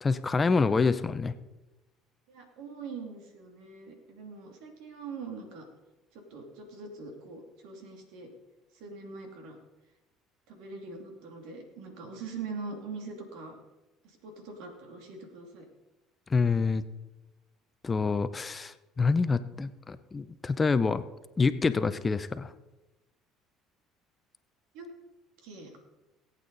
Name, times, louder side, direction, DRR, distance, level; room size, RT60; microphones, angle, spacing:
voice 1, 0.0-1.3 16.3-16.8 17.8-21.0 21.4-22.5, left 4 dB, 25° left, 12 dB, 0.7 m, -27 dB
voice 2, 2.3-5.6 6.1-8.3 8.7-9.6 10.5-13.6 14.0-15.7 24.7-24.9 25.4-25.8, right 4 dB, 80° right, 3 dB, 2.6 m, -43 dB
18.5 x 8.4 x 4.1 m, 1.1 s
supercardioid pair, 85°, 0 cm